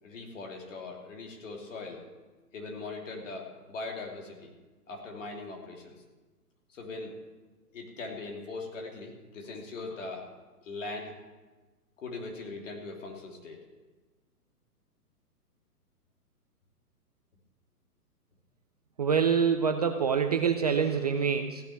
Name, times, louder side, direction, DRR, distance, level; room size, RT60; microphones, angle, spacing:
voice 1, 0.0-2.0 2.5-4.5 4.9-6.0 6.7-7.1 7.7-10.3 10.6-11.1 12.0-13.6, left 3 dB, 55° left, 1 dB, 3.1 m, -40 dB
voice 2, 19.0-21.7, right 6 dB, 25° right, 6 dB, 0.4 m, -26 dB
15.5 x 6.0 x 9.2 m, 1.2 s
figure-of-eight pair, 120°, 46 cm